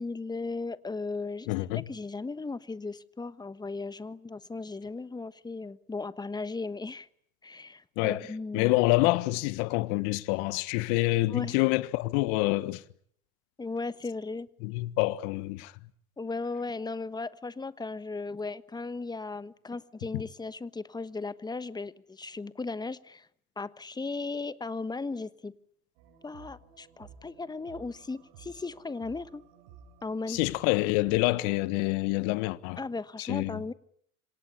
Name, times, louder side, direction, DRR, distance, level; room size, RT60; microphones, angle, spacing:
voice 1, 0.0-1.5 1.7-7.1 7.4-8.7 11.3-11.6 13.6-14.5 16.2-23.3 23.6-25.5 26.2-29.4 30.0-30.4 32.8-33.7, left 3 dB, 10° left, 1.2 m, -36 dB
voice 2, 1.5-1.8 8.0-8.3 8.5-12.8 14.6-15.7 30.3-32.8 33.2-33.6, left 20 dB, 55° left, 1.5 m, -27 dB
sound 1, 26.0-31.7, right 6 dB, 60° right, 6.7 m, -54 dB
27.5 x 26.0 x 8.4 m
hypercardioid pair, 85°, 44 cm